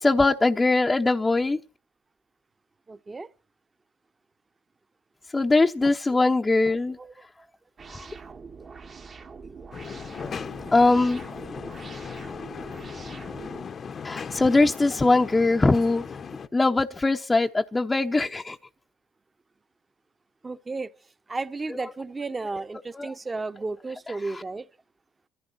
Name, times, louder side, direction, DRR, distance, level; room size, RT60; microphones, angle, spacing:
voice 1, 0.0-1.6 5.3-7.0 7.9-8.0 10.2-11.2 14.0-16.0 16.5-18.6 21.7-21.9 22.9-23.2 24.2-24.4, left 3 dB, 20° left, 0.9 m, -22 dB
voice 2, 2.9-3.3 7.0-7.1 20.4-20.9 21.3-24.7, right 3 dB, 25° right, 1.2 m, -33 dB
sound 1, 7.8-13.7, right 5 dB, 40° right, 1.5 m, -44 dB
sound 2, 9.7-16.5, left 6 dB, 40° left, 1.0 m, -37 dB
27.0 x 15.0 x 2.7 m
supercardioid pair, 80°, 0 cm